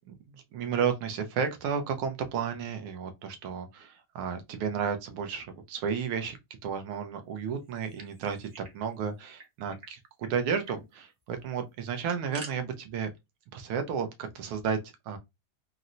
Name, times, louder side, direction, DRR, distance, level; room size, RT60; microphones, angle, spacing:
voice 1, 0.5-6.4 6.6-13.1 13.5-14.8 15.1-15.2, right 6 dB, 90° right, 1.6 m, -32 dB
sound 1, 7.7-8.8 9.0-9.1 9.4-9.9 10.2-10.3 10.6-10.8 11.8-12.5, right 3 dB, 50° right, 0.8 m, -47 dB
4.1 x 2.0 x 2.5 m
omnidirectional pair, 2.2 m